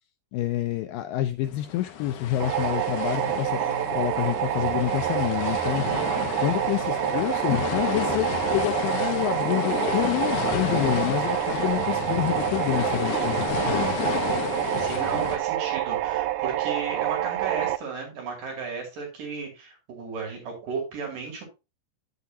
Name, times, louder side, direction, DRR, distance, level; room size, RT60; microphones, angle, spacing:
voice 1, 0.3-3.6 3.9-5.8 6.4-14.0, left 14 dB, 90° left, 9 dB, 1.9 m, -28 dB
sound 1, 1.4-15.4, left 8 dB, 70° left, 2.1 m, -31 dB
sound 2, 2.4-17.8, right 14 dB, 85° right, 2.4 m, -27 dB
voice 2, 5.7-6.1 13.8-14.2 14.8-21.4, right 5 dB, 60° right, 0 dB, 3.8 m, -35 dB
8.5 x 8.2 x 2.7 m, 0.27 s
omnidirectional pair, 4.5 m